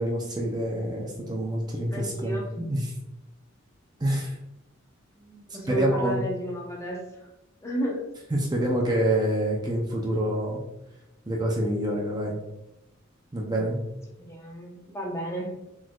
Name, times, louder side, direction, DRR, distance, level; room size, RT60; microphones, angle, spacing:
voice 1, 0.0-2.9 4.0-4.4 5.7-6.3 8.3-10.6 11.3-12.4 13.3-13.8, right 1 dB, 20° right, -2 dB, 0.7 m, -27 dB
voice 2, 1.9-2.5 5.2-7.0 7.6-8.1 13.5-13.7 14.2-15.6, right 1 dB, 15° left, -2 dB, 1.0 m, -32 dB
4.6 x 4.1 x 2.4 m, 0.92 s
head